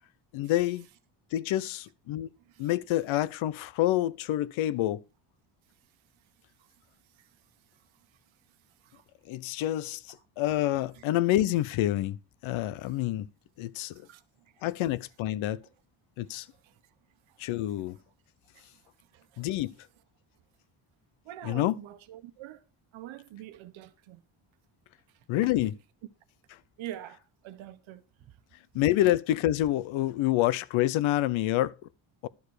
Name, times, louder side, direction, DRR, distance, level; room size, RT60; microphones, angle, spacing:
voice 1, 0.3-0.9 1.3-2.3 2.6-5.0 9.3-12.2 12.4-13.3 13.6-14.0 14.6-15.6 16.2-16.5 17.4-18.0 19.4-19.7 21.4-21.8 25.3-25.7 28.7-31.7 32.2-32.3, left 14 dB, 90° left, 0.8 m, -27 dB
voice 2, 2.4-2.7 7.1-7.3 8.8-9.0 10.9-11.0 12.8-12.9 13.9-14.2 16.6-16.8 17.3-17.5 18.5-18.7 19.0-19.5 21.2-22.6 22.9-24.2 26.8-28.3 29.0-29.1, right 13 dB, 80° right, 1.3 m, -46 dB
12.0 x 6.8 x 4.9 m
cardioid pair, 175°, 46 cm